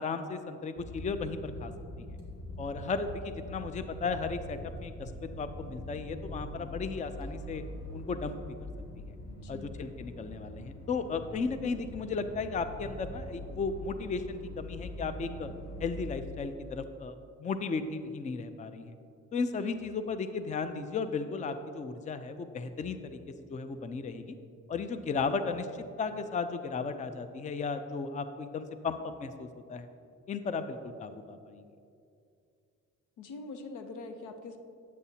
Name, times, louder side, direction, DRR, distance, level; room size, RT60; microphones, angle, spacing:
voice 1, 0.0-1.7 2.0-2.1 2.6-7.6 7.9-8.4 9.5-15.5 15.8-18.9 19.3-23.2 23.5-24.4 24.7-29.9 30.3-31.7, left 4 dB, 25° left, 10 dB, 0.4 m, -35 dB
sound 1, 0.8-16.1, left 1 dB, 50° left, 1.7 m, -43 dB
voice 2, 9.2-9.7 33.2-34.6, left 3 dB, 85° left, 7 dB, 0.7 m, -43 dB
8.5 x 8.2 x 2.8 m, 2.5 s
cardioid pair, 90°, 30 cm